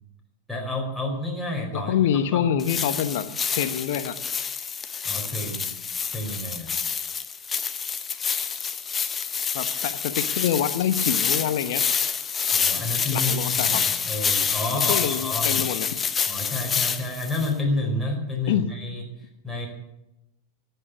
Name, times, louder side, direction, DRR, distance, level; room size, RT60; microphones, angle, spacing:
voice 1, 0.5-1.9 2.3-2.5 5.0-5.7 6.1-6.7 12.5-15.5 16.3-19.7, left 2 dB, 5° left, -3 dB, 4.7 m, -30 dB
voice 2, 1.7-4.2 9.5-11.8 13.1-13.8 14.7-15.9 18.5-18.7, left 9 dB, 55° left, 11 dB, 1.2 m, -26 dB
sound 1, 2.6-17.5, left 6 dB, 20° left, 1.0 m, -27 dB
19.5 x 8.1 x 8.1 m, 0.87 s
figure-of-eight pair, 90°, 0 cm